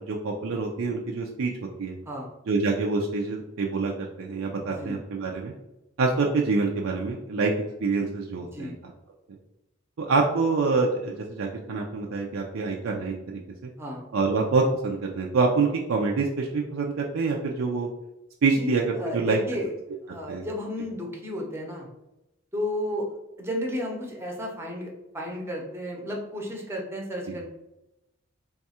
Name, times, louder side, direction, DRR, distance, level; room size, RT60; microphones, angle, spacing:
voice 1, 0.0-1.5 1.8-1.9 2.5-5.5 6.0-7.5 7.8-8.7 10.0-13.7 14.1-17.9 18.4-19.4 20.1-20.4 27.3-27.4, right 4 dB, 80° right, 0 dB, 0.4 m, -26 dB
voice 2, 4.6-5.0 8.3-8.7 13.8-14.1 18.5-19.7 20.0-21.9 22.5-23.1 23.4-27.5, left 1 dB, 15° right, 0 dB, 0.7 m, -33 dB
3.5 x 2.3 x 4.1 m, 0.92 s
head